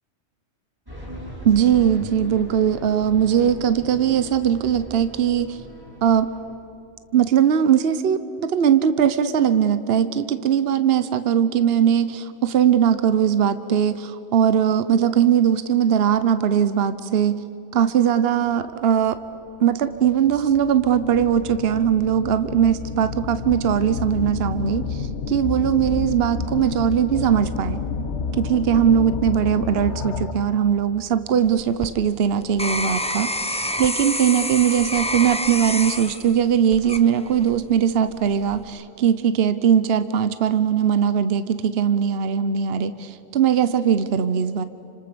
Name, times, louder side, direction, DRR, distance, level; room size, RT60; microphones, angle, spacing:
sound 1, 0.9-6.4, right 1 dB, 20° right, 6.9 m, -39 dB
voice 1, 1.4-5.6 6.0-6.3 7.1-17.4 17.7-19.2 19.6-27.8 28.3-44.6, right 8 dB, 60° right, 12 dB, 1.0 m, -20 dB
sound 2, 19.1-19.2 19.9-30.6, left 5 dB, 75° left, 1.4 m, -30 dB
sound 3, 31.4-37.6 38.2-38.6, left 1 dB, 5° left, 0.8 m, -28 dB
29.5 x 26.0 x 6.9 m, 2.8 s
omnidirectional pair, 1.2 m